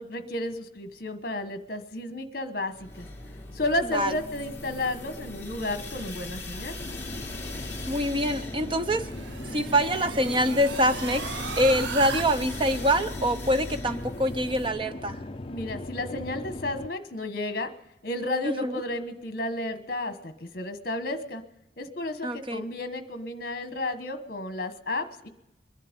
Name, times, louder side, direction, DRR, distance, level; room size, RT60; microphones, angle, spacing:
voice 1, 0.0-3.1 3.5-6.8 15.5-17.7 18.0-21.4 21.8-25.3, left 1 dB, 55° left, 8 dB, 1.3 m, -32 dB
sound 1, 2.7-14.7, left 2 dB, 15° left, 1.6 m, -39 dB
sound 2, 6.8-16.9, left 2 dB, 30° left, 0.5 m, -39 dB
voice 2, 7.9-9.1 9.5-15.2 18.4-18.8 22.2-22.6, equal, 30° right, 9 dB, 0.7 m, -25 dB
sound 3, 8.3-12.2, right 7 dB, 85° right, 0.5 m, -38 dB
22.0 x 11.0 x 5.3 m, 0.89 s
head